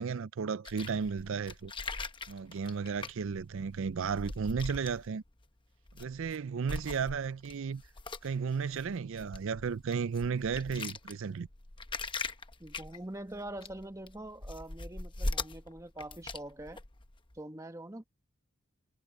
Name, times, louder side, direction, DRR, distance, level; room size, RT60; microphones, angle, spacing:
voice 1, 0.0-1.7 2.3-5.2 6.0-7.8 8.2-11.5, right 6 dB, 60° right, 0.4 m, -34 dB
sound 1, 0.7-5.4 5.9-6.4 6.7-17.4, left 3 dB, 20° left, 0.9 m, -41 dB
voice 2, 12.6-16.8 17.3-18.0, right 1 dB, 15° right, 1.2 m, -44 dB
head